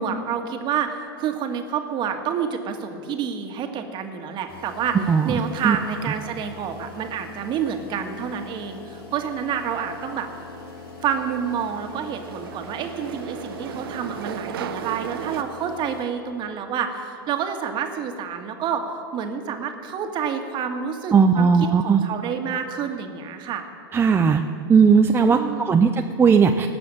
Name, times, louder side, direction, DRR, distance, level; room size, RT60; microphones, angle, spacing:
voice 1, 0.0-5.0 5.2-10.3 11.0-18.9 19.1-23.6 25.3-25.8, right 7 dB, 40° right, 5 dB, 1.7 m, -28 dB
sound 1, 4.5-16.0, left 4 dB, 75° left, 3.6 m, -42 dB
voice 2, 5.1-5.8 21.1-22.0 23.9-24.4 24.7-26.7, right 6 dB, 20° right, 5 dB, 0.6 m, -17 dB
sound 2, 10.0-15.4, right 9 dB, 75° right, 0.8 m, -36 dB
18.5 x 7.0 x 8.8 m, 2.4 s
hypercardioid pair, 105°, 12 cm